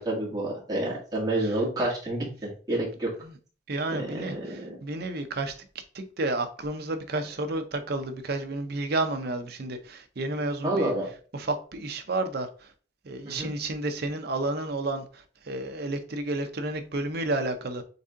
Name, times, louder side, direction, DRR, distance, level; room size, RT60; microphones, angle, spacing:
voice 1, 0.0-3.1 3.9-4.8 10.6-11.1 13.2-13.5, right 1 dB, 20° right, 1.6 m, -29 dB
voice 2, 3.7-5.5 5.9-10.9 11.3-12.5 13.0-17.8, right 2 dB, 50° right, 0.6 m, -31 dB
4.1 x 3.6 x 3.6 m
head